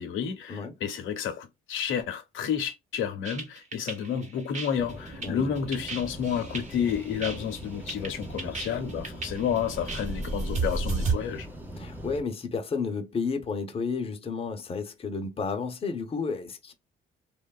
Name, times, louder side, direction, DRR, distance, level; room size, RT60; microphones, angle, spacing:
voice 1, 0.0-11.5, left 8 dB, 80° left, 0.6 m, -30 dB
sound 1, 3.2-11.1, right 3 dB, 35° right, 0.9 m, -33 dB
sound 2, 4.8-12.2, right 1 dB, 10° right, 0.7 m, -41 dB
Bass guitar, 5.1-9.0, right 4 dB, 70° right, 0.8 m, -55 dB
voice 2, 11.8-16.7, left 4 dB, 30° left, 0.5 m, -32 dB
2.9 x 2.2 x 2.2 m
cardioid pair, 90°, 20 cm